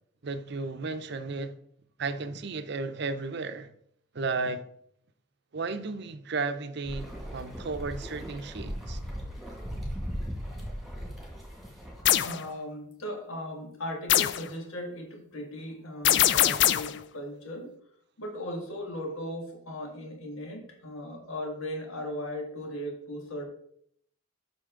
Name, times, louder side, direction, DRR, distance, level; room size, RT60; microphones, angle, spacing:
voice 1, 0.2-1.6 2.0-3.7 4.1-4.6 5.5-9.0, right 3 dB, 55° right, 0.6 m, -34 dB
sound 1, 6.8-12.0, equal, ahead, 1.9 m, -38 dB
sound 2, 12.0-12.4 14.1-14.5 16.0-17.0, left 12 dB, 55° left, 0.4 m, -22 dB
voice 2, 12.2-17.7 18.2-23.5, left 1 dB, 80° left, 2.0 m, -37 dB
7.9 x 5.9 x 3.7 m
head